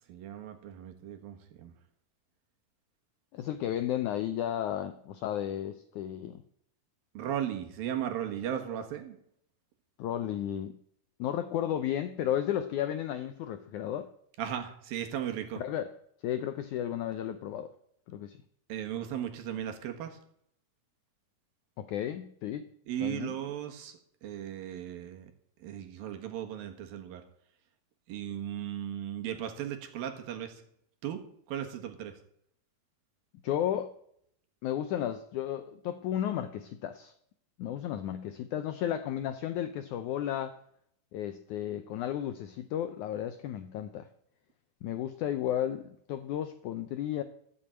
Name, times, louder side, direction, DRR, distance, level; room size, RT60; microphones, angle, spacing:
voice 1, 0.1-1.7 7.1-9.2 14.4-15.6 18.7-20.2 22.9-25.3 25.6-27.2 28.1-30.6 31.0-32.2, right 10 dB, 70° right, 5 dB, 3.2 m, -36 dB
voice 2, 3.3-6.4 10.0-10.8 11.2-14.1 15.6-15.9 16.2-17.7 18.1-18.4 21.8-22.7 23.0-23.4 33.4-33.9 34.6-37.1 37.6-40.6 41.1-44.1 44.8-47.2, left 11 dB, 90° left, 9 dB, 1.7 m, -33 dB
15.0 x 7.1 x 8.8 m, 0.70 s
omnidirectional pair, 4.4 m